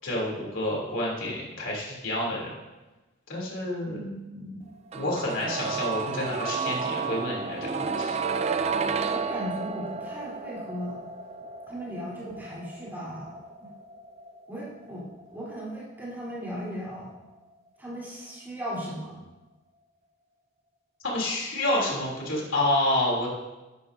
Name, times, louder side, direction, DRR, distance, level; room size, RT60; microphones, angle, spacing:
voice 1, 0.0-2.5 3.3-4.0 4.9-8.2 21.0-23.3, left 1 dB, 75° left, -3 dB, 3.3 m, -29 dB
voice 2, 3.8-4.7 9.1-11.0 11.7-13.7 14.5-17.1 17.8-19.2, equal, 10° right, -8 dB, 3.7 m, -37 dB
sound 1, 4.9-16.8 17.0-17.1, right 5 dB, 30° right, 0.4 m, -32 dB
12.0 x 11.5 x 2.8 m, 1.1 s
head